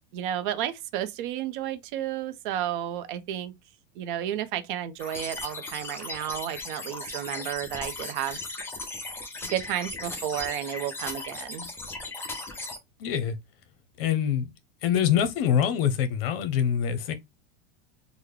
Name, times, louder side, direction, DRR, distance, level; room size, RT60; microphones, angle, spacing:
voice 1, 0.1-3.5 4.0-8.4 9.4-11.7, right 11 dB, 55° right, 0.6 m, -32 dB
sound 1, 5.0-12.8, left 2 dB, 10° left, 0.5 m, -37 dB
voice 2, 13.0-13.4 14.0-14.5 14.8-17.1, left 9 dB, 65° left, 0.8 m, -24 dB
3.7 x 2.1 x 3.1 m
supercardioid pair, 150°, 30 cm